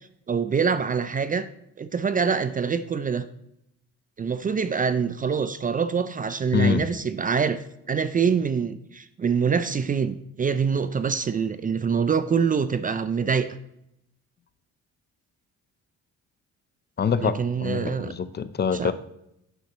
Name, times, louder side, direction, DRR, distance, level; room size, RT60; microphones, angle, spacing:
voice 1, 0.3-1.5 1.8-3.3 4.2-13.6 17.2-18.1 18.7-18.9, right 6 dB, 30° right, 13 dB, 0.4 m, -25 dB
voice 2, 6.5-6.9 17.0-17.3 17.6-18.9, left 6 dB, 35° left, 13 dB, 0.5 m, -24 dB
8.9 x 6.4 x 2.9 m, 0.79 s
cardioid pair, 90°, 30 cm